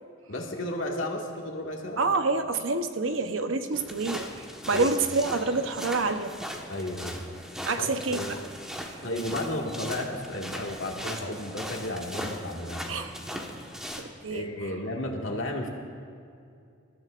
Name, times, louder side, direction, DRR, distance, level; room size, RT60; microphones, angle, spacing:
voice 1, 0.3-2.0 4.7-4.9 6.7-7.3 7.8-8.4 9.0-13.2 13.6-13.7 14.3-15.7, left 1 dB, 80° left, 0 dB, 1.9 m, -33 dB
voice 2, 2.0-4.3 4.7-6.3 7.6-8.4 12.9-13.2 14.0-14.5, right 3 dB, 85° right, 8 dB, 0.9 m, -27 dB
sound 1, 3.7-14.0, equal, 5° right, 1.3 m, -39 dB
26.0 x 14.0 x 2.5 m, 2.4 s
head